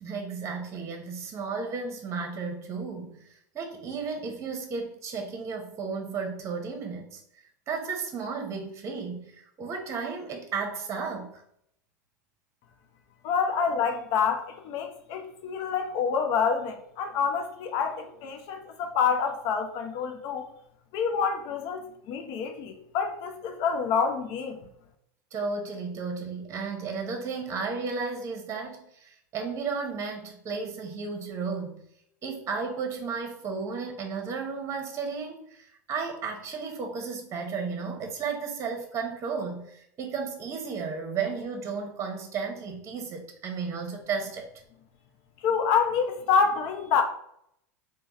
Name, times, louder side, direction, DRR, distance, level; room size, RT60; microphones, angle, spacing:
voice 1, 0.0-3.2 3.5-7.2 7.7-11.3 25.3-31.8 32.2-44.5, right 5 dB, 30° right, 4 dB, 0.8 m, -33 dB
voice 2, 13.2-20.5 20.9-24.6 45.4-47.0, left 6 dB, 50° left, 5 dB, 0.7 m, -27 dB
3.4 x 2.1 x 4.0 m, 0.71 s
hypercardioid pair, 85°, 9 cm